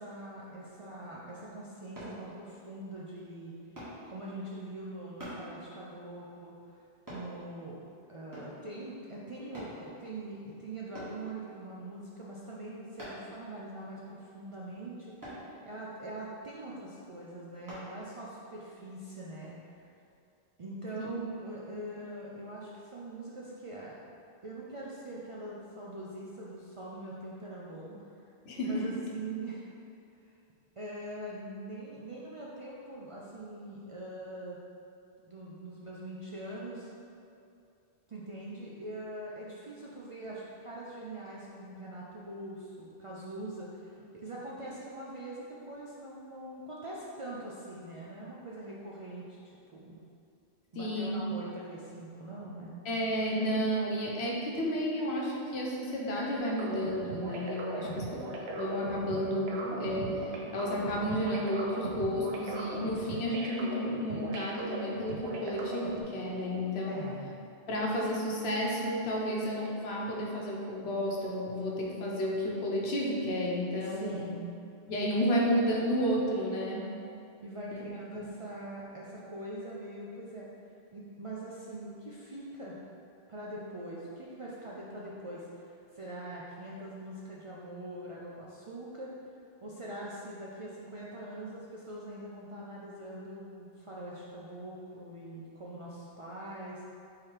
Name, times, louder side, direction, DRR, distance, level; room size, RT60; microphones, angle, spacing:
voice 1, 0.0-3.5 4.1-6.6 7.1-7.8 8.1-15.1 15.6-19.7 20.6-24.0 24.4-28.0 28.6-29.7 30.8-34.6 35.2-36.9 38.1-50.0 50.7-52.8 57.7-58.1 66.9-67.3 73.8-74.5 77.4-80.5 80.9-82.8 83.3-89.1 89.6-96.8, right 1 dB, 55° right, -5 dB, 0.3 m, -43 dB
sound 1, 2.0-2.2 3.8-4.0 5.2-5.4 7.1-7.3 8.3-8.6 9.5-9.8 10.9-11.2 13.0-13.3 15.2-15.4 17.7-17.9 18.4-18.6, equal, 20° right, 1.3 m, -43 dB
voice 2, 28.5-28.9 50.7-51.2 52.8-58.1 58.5-67.1 67.7-74.2 74.9-76.9 77.7-77.8 78.1-78.3, equal, 85° left, -3 dB, 1.0 m, -32 dB
sound 2, 56.4-66.0, right 2 dB, 80° right, 0.8 m, -39 dB
3.7 x 3.2 x 4.4 m, 2.6 s
omnidirectional pair, 1.0 m